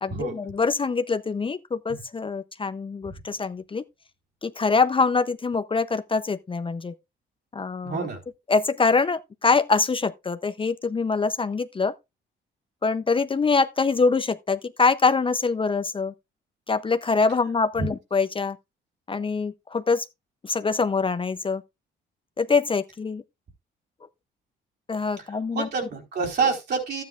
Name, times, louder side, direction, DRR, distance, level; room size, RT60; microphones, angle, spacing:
voice 1, 0.0-3.8 4.4-6.9 7.5-8.1 8.5-11.9 12.8-16.1 16.7-18.6 19.1-20.1 20.4-21.6 22.4-23.2 24.9-25.7, left 4 dB, 25° left, 0.6 m, -24 dB
voice 2, 7.8-8.2 25.6-27.0, right 5 dB, 55° right, 4.1 m, -27 dB
12.5 x 9.4 x 2.4 m
cardioid pair, 90°, 20 cm